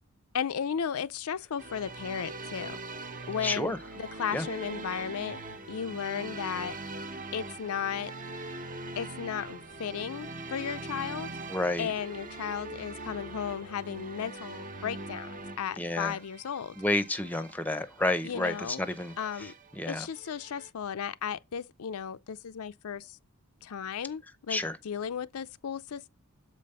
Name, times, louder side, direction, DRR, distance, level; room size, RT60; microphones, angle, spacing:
voice 1, 0.3-2.8 3.3-5.4 5.7-6.7 7.3-8.1 9.0-11.3 11.8-16.7 18.2-18.8 19.2-19.5 19.9-23.2 23.6-26.1, left 7 dB, 80° left, 0.5 m, -35 dB
sound 1, 1.6-20.7, right 2 dB, 40° right, 0.9 m, -42 dB
voice 2, 3.4-3.8 4.3-4.5 11.5-11.9 15.8-16.2 16.8-19.1 19.8-20.1 24.5-24.8, left 1 dB, 5° left, 0.7 m, -30 dB
7.5 x 5.1 x 5.5 m
head